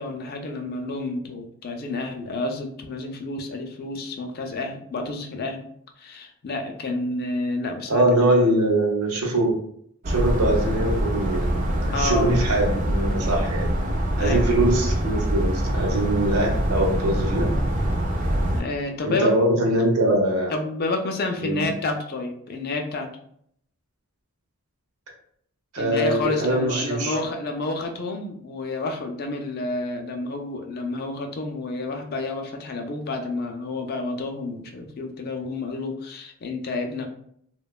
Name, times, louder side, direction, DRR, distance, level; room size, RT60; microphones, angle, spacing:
voice 1, 0.0-5.7 6.0-8.1 11.9-12.4 14.2-14.5 18.5-19.3 20.5-23.1 25.8-37.1, left 2 dB, 45° left, 3 dB, 0.4 m, -29 dB
voice 2, 7.9-9.5 10.1-13.8 14.2-17.4 19.0-20.5 21.4-21.6 25.7-27.2, right 1 dB, 90° right, 0 dB, 0.7 m, -22 dB
sound 1, 10.0-18.6, equal, 35° right, 0.4 m, -24 dB
2.8 x 2.2 x 2.2 m, 0.68 s
head